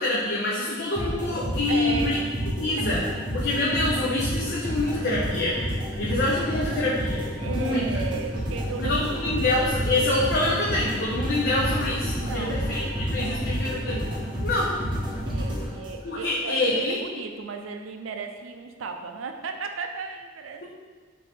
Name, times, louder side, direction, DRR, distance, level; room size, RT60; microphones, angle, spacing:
voice 1, 0.0-2.2 2.6-3.0 3.3-5.6 6.0-7.9 8.8-12.8 13.1-14.0 14.4-14.7 16.0-17.0, left 2 dB, 55° left, -6 dB, 0.6 m, -26 dB
sound 1, 1.0-16.2, equal, 25° right, 0.8 m, -30 dB
voice 2, 1.7-2.4 2.8-2.9 7.4-9.4 12.2-13.7 15.3-20.6, right 4 dB, 85° right, 5 dB, 0.4 m, -36 dB
5.4 x 2.7 x 3.4 m, 1.5 s
head